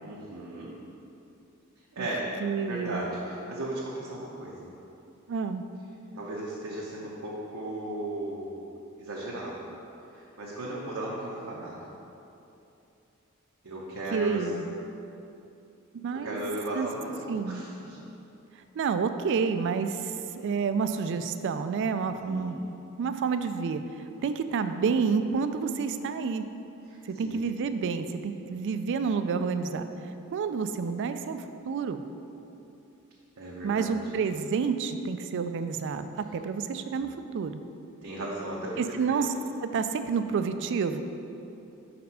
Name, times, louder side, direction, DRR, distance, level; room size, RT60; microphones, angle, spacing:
voice 1, 0.0-0.8 2.0-2.3 2.7-4.7 6.1-8.7 9.0-9.7 10.1-11.9 13.6-14.5 16.1-18.0 22.2-22.6 26.9-27.4 28.4-28.5 33.4-34.2 38.0-39.2, right 1 dB, 85° right, -5 dB, 0.8 m, -36 dB
voice 2, 2.4-3.1 5.3-5.7 14.1-14.7 15.9-16.4 16.7-16.9 17.3-17.7 18.8-22.6 23.0-26.5 27.1-29.9 30.3-32.0 33.6-37.6 38.8-39.3 39.6-41.0, right 5 dB, 60° right, 10 dB, 0.3 m, -29 dB
5.1 x 4.2 x 5.6 m, 2.9 s
head